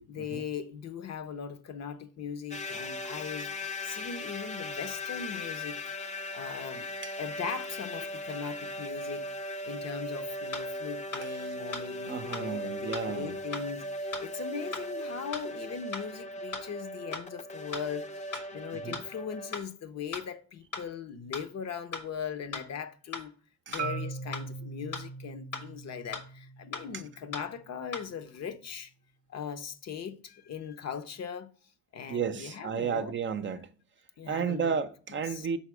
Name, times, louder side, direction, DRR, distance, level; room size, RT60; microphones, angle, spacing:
voice 1, 0.1-3.5 3.8-5.8 6.3-6.9 7.2-9.3 9.6-18.0 18.5-23.3 23.7-28.9 29.3-31.5 31.9-33.1 34.2-34.8 35.3-35.5, left 7 dB, 60° left, 0.8 m, -39 dB
sound 1, 2.5-19.6, left 1 dB, 25° left, 0.6 m, -38 dB
sound 2, 10.5-10.6 11.1-11.2 11.7-11.8 12.3-12.4 12.9-13.0 13.5-13.6 14.1-14.2 14.7-14.8 15.3-15.4 15.9-16.0 16.5-16.6 17.1-17.2 17.7-17.8 18.3-18.4 18.9-19.0 19.5-19.6 20.1-20.2 20.7-20.8 21.3-21.4 21.9-22.0 22.5-22.6 23.1-23.2 23.7-23.8 24.3-24.4 24.9-25.0 25.5-25.6 26.1-26.2 26.7-26.8 27.3-27.4 27.9-28.0, left 4 dB, 80° left, 1.5 m, -36 dB
voice 2, 12.1-13.4 18.7-19.0 23.7-23.8 32.1-33.7 34.3-35.6, right 6 dB, 40° right, 0.5 m, -33 dB
Marimba xylophone, 23.8-28.0, right 4 dB, 90° right, 0.6 m, -40 dB
5.7 x 4.1 x 4.7 m
cardioid pair, 90°, 30 cm